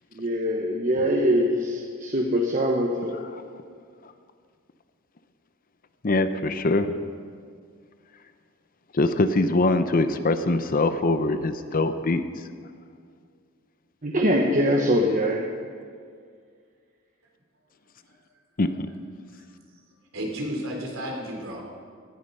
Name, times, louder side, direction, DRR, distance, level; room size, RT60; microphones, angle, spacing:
voice 1, 0.1-3.2 14.0-15.5, equal, 40° right, 1 dB, 1.1 m, -23 dB
voice 2, 6.0-7.0 8.9-12.3 18.6-18.7, left 2 dB, 45° left, 10 dB, 0.7 m, -23 dB
voice 3, 20.1-21.6, equal, 85° right, 0 dB, 3.6 m, -32 dB
17.0 x 12.0 x 5.5 m, 2.1 s
head